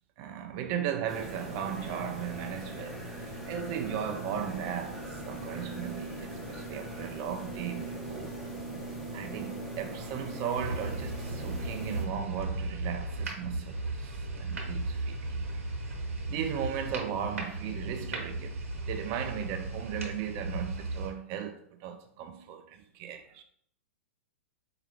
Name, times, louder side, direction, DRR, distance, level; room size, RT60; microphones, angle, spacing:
voice 1, 0.2-8.4 9.1-15.4 16.3-18.6 18.8-23.4, right 9 dB, 40° right, 0.5 m, -37 dB
sound 1, 1.1-12.0, right 1 dB, ahead, 0.8 m, -40 dB
sound 2, 10.5-21.1, right 2 dB, 75° right, 1.0 m, -36 dB
4.6 x 2.4 x 3.2 m
figure-of-eight pair, 110°, 7 cm